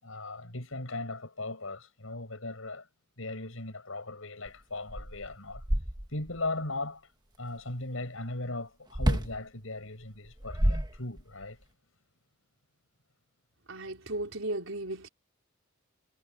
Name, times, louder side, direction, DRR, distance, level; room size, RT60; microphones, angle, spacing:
voice 1, 0.0-2.9 3.2-5.6 6.1-7.1 7.4-11.6, left 2 dB, 85° left, 5.8 m, -38 dB
sound 1, 4.5-4.6 4.9-6.4 8.9-9.4 10.2-11.5, equal, 20° right, 1.4 m, -29 dB
voice 2, 13.7-15.1, right 1 dB, 80° right, 4.5 m, -35 dB
head